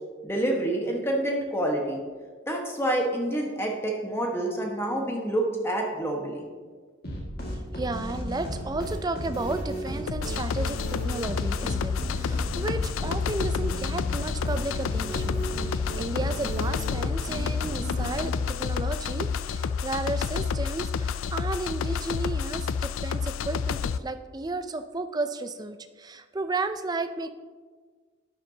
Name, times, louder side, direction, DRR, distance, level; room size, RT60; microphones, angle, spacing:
voice 1, 0.2-2.0 2.5-6.5, right 1 dB, 10° left, 0 dB, 1.3 m, -27 dB
sound 1, 7.0-18.6, equal, 50° left, 1.9 m, -34 dB
voice 2, 7.7-27.3, right 2 dB, 20° right, 10 dB, 0.4 m, -33 dB
sound 2, 10.1-24.0, left 6 dB, 80° left, 0.3 m, -29 dB
12.0 x 9.7 x 2.8 m, 1.5 s
head